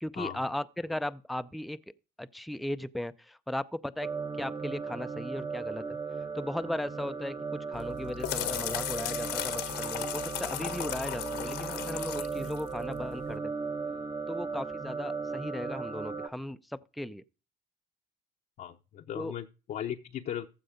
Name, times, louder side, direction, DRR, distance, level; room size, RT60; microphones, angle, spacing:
voice 1, 0.0-1.8 2.2-4.1 4.4-6.0 6.3-13.5 14.3-17.2 19.1-19.3, left 1 dB, ahead, 0.4 m, -37 dB
sound 1, 4.0-16.3, right 5 dB, 25° right, 0.8 m, -37 dB
sound 2, 7.7-13.3, left 12 dB, 80° left, 1.2 m, -36 dB
voice 2, 18.6-20.5, left 10 dB, 55° left, 0.8 m, -37 dB
14.5 x 5.3 x 5.1 m
cardioid pair, 110°, 17 cm